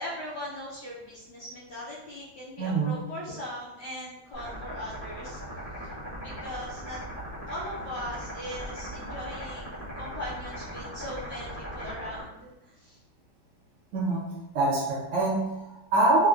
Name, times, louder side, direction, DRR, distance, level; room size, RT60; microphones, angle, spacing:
voice 1, 0.0-5.4 5.8-7.0 7.5-13.0, equal, 65° left, -7 dB, 1.1 m, -39 dB
voice 2, 2.6-3.0 13.9-14.3 14.5-16.3, right 2 dB, 65° right, -5 dB, 1.4 m, -25 dB
sound 1, 4.3-12.2, equal, 40° left, 0.8 m, -39 dB
4.4 x 2.2 x 2.4 m, 0.95 s
omnidirectional pair, 2.4 m